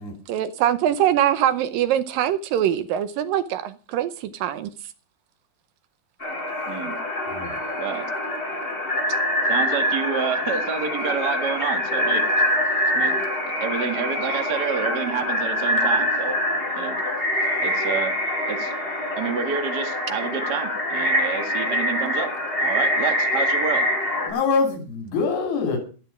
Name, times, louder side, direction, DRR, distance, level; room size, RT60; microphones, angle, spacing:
voice 1, 0.3-4.7, right 11 dB, 75° right, 2.3 m, -23 dB
sound 1, 6.2-24.3, left 1 dB, 15° left, 5.4 m, -24 dB
voice 2, 6.7-7.0 7.8-8.1 9.4-12.2 12.9-13.2 13.6-16.4 16.7-17.0 17.6-18.1 18.5-18.7 19.2-22.3 22.6-23.9, right 6 dB, 40° right, 1.6 m, -28 dB
voice 3, 24.3-25.8, left 4 dB, 90° left, 4.9 m, -24 dB
12.0 x 11.5 x 5.9 m
omnidirectional pair, 4.3 m